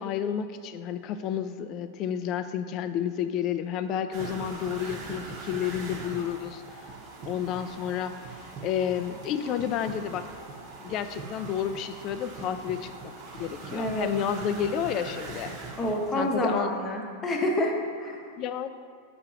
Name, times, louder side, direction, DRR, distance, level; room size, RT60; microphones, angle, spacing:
voice 1, 0.0-6.6 7.2-10.3 10.8-15.5 16.1-16.7 18.4-18.7, left 9 dB, 40° left, 10 dB, 0.3 m, -31 dB
sound 1, 4.1-16.5, right 3 dB, 45° right, 0.9 m, -41 dB
voice 2, 13.7-14.1 15.8-18.3, left 1 dB, 20° left, 1 dB, 0.8 m, -28 dB
6.7 x 2.9 x 4.9 m, 2.3 s
supercardioid pair, 140°, 0 cm